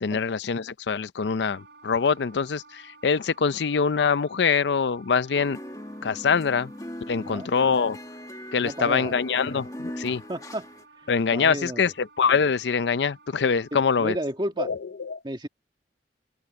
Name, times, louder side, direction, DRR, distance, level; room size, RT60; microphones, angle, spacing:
voice 1, 0.0-5.6 6.0-6.7 7.1-8.0 8.5-10.2 11.1-14.2 14.6-15.2, left 5 dB, 75° left, 0.5 m, -24 dB
Wind instrument woodwind instrument, 1.5-14.4, right 3 dB, 70° right, 7.1 m, -54 dB
sound 1, 5.3-10.8, left 1 dB, 20° left, 1.8 m, -40 dB
voice 2, 7.2-7.5 8.6-9.1 10.1-10.7 11.3-11.8 13.7-14.7 15.2-15.5, right 1 dB, 25° right, 1.9 m, -32 dB
open air
head